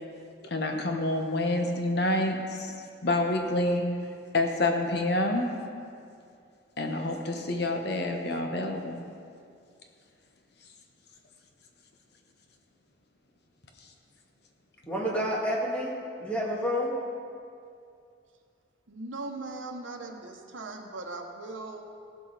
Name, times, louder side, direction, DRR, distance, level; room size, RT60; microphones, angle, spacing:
voice 1, 0.4-2.7 3.0-3.8 4.3-5.5 6.8-9.0, left 2 dB, 55° left, 3 dB, 1.0 m, -28 dB
voice 2, 14.9-16.9, equal, 5° left, -4 dB, 1.9 m, -29 dB
voice 3, 18.9-21.9, right 2 dB, 75° right, 3 dB, 1.0 m, -39 dB
16.5 x 7.6 x 4.1 m, 2.4 s
head